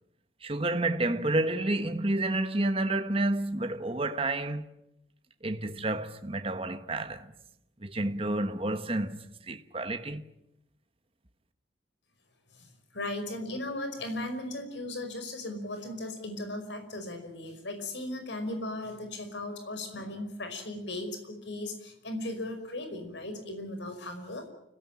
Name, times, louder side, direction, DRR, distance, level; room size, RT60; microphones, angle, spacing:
voice 1, 0.4-4.7 5.4-7.3 7.8-10.2, right 2 dB, 30° right, 1.3 m, -30 dB
voice 2, 12.5-24.5, left 1 dB, 70° left, 5.2 m, -37 dB
30.0 x 17.0 x 9.0 m
head